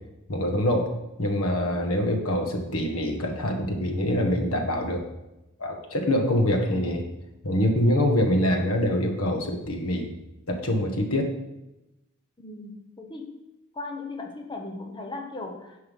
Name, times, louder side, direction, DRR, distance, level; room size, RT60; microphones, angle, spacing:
voice 1, 0.3-0.9 1.2-5.0 5.6-7.0 7.4-10.1 10.5-11.3, left 1 dB, 75° left, 4 dB, 1.5 m, -24 dB
voice 2, 12.4-13.4 13.7-15.8, left 2 dB, 20° left, 3 dB, 0.9 m, -38 dB
9.9 x 5.6 x 5.5 m, 0.94 s
head